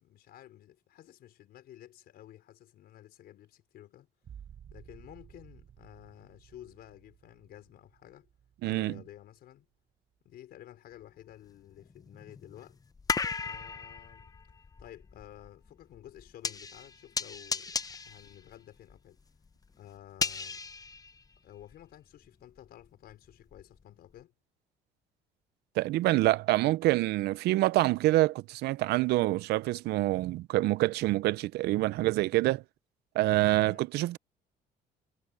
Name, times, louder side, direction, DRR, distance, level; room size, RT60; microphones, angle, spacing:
voice 1, 0.0-4.1 4.7-8.3 8.6-9.7 10.2-12.8 13.4-14.3 14.8-19.2 19.8-20.7 21.4-24.3 33.6-33.8, left 12 dB, 70° left, 4.9 m, -52 dB
sound 1, 4.2-9.7 10.2-10.8, right 8 dB, 50° right, 7.7 m, -55 dB
voice 2, 8.6-8.9 25.8-32.6 33.1-34.2, right 17 dB, 80° right, 0.6 m, -26 dB
sound 2, 11.0-11.1 11.7-21.8 22.2-23.8 24.2-24.3, left 4 dB, 20° left, 0.8 m, -37 dB
cardioid pair, 110°, 17 cm